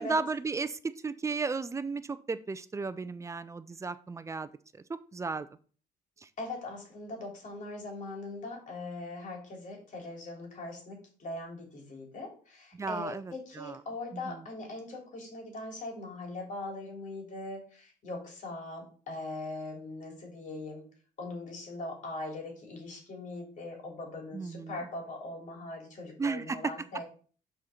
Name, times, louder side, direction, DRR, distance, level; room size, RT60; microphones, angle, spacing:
voice 1, 0.0-4.8 5.1-5.5 12.7-13.8 14.1-14.5 24.3-24.9 26.2-26.6, right 4 dB, 15° right, 13 dB, 0.5 m, -35 dB
voice 2, 6.4-20.8 21.2-27.0, left 2 dB, 50° left, 1 dB, 3.0 m, -41 dB
6.2 x 4.4 x 5.0 m, 0.41 s
cardioid pair, 110°, 17 cm